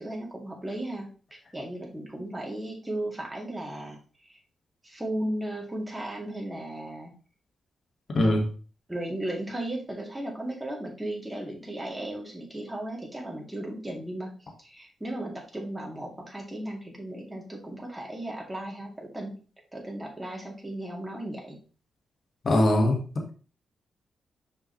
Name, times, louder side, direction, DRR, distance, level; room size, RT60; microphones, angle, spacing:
voice 1, 0.0-4.4 4.8-7.1 8.9-14.3 14.6-19.4 19.7-21.6, right 1 dB, 10° right, 2.6 m, -36 dB
voice 2, 8.1-8.5 22.4-23.3, left 1 dB, 45° left, 1.9 m, -22 dB
6.1 x 5.4 x 3.3 m
cardioid pair, 85°, 0 cm